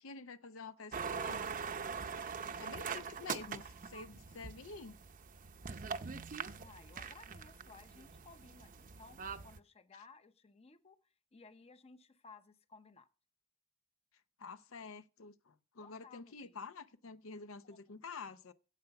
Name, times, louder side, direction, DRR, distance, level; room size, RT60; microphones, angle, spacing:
voice 1, 0.0-1.4 2.6-5.0 14.4-18.5, left 4 dB, 85° left, 0.7 m, -49 dB
sound 1, 0.9-9.6, right 6 dB, 40° right, 0.6 m, -43 dB
voice 2, 6.6-13.1 15.8-16.6, left 4 dB, 30° left, 0.6 m, -59 dB
11.5 x 8.0 x 5.8 m
head